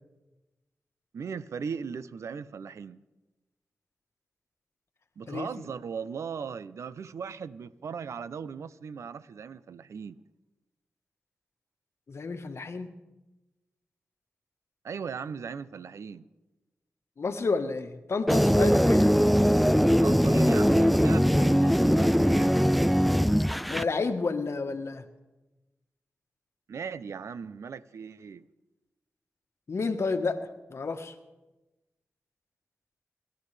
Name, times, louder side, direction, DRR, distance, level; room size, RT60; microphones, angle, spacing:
voice 1, 1.1-3.0 5.2-10.2 14.8-16.2 18.7-18.8 20.0-22.6 26.7-28.4, right 6 dB, 85° right, 15 dB, 0.6 m, -38 dB
voice 2, 12.1-12.9 17.2-19.0 23.7-25.0 29.7-30.4 30.7-31.1, left 4 dB, 65° left, 7 dB, 1.2 m, -30 dB
sound 1, 18.3-23.8, equal, ahead, 0.4 m, -21 dB
27.5 x 12.5 x 3.3 m, 1.1 s
cardioid pair, 50°, 5 cm